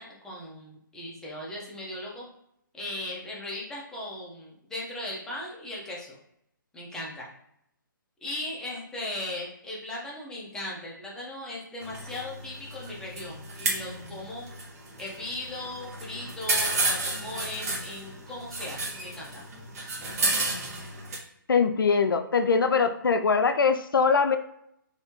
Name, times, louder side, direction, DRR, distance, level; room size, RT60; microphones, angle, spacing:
voice 1, 0.0-2.3 2.7-6.2 6.7-7.3 8.2-14.4 15.0-19.4, left 1 dB, 5° left, -5 dB, 0.7 m, -38 dB
sound 1, 11.8-21.2, right 2 dB, 45° right, 1.1 m, -32 dB
voice 2, 21.5-24.4, left 5 dB, 75° left, 7 dB, 0.4 m, -22 dB
3.3 x 2.7 x 2.8 m, 0.75 s
figure-of-eight pair, 140°, 11 cm